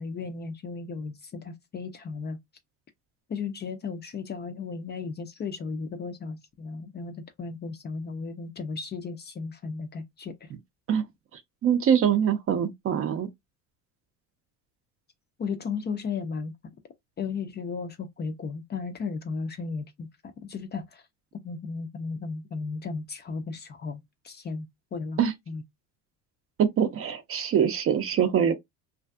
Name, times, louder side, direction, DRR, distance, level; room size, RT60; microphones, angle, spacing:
voice 1, 0.0-2.4 3.3-10.5 15.4-16.5 17.2-21.0 21.4-25.2 25.5-25.6, left 4 dB, 25° left, 0.4 m, -35 dB
voice 2, 11.6-13.3 25.2-25.3 26.6-28.5, right 8 dB, 35° right, 0.5 m, -23 dB
2.5 x 2.5 x 2.2 m
supercardioid pair, 105°, 39 cm